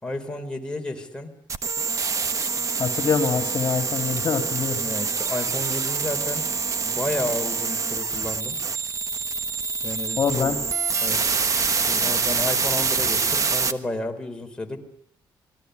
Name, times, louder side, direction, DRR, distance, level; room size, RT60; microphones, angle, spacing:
voice 1, 0.0-1.3 4.7-6.5 6.8-8.6 9.8-10.5 11.0-11.4 11.8-14.8, left 2 dB, 10° left, 3 dB, 4.5 m, -32 dB
sound 1, 1.5-13.7, right 5 dB, 40° right, 1.4 m, -26 dB
voice 2, 2.8-4.8 10.2-10.5, left 6 dB, 45° left, 6 dB, 2.9 m, -24 dB
27.5 x 21.0 x 8.2 m, 0.72 s
cardioid pair, 110°, 9 cm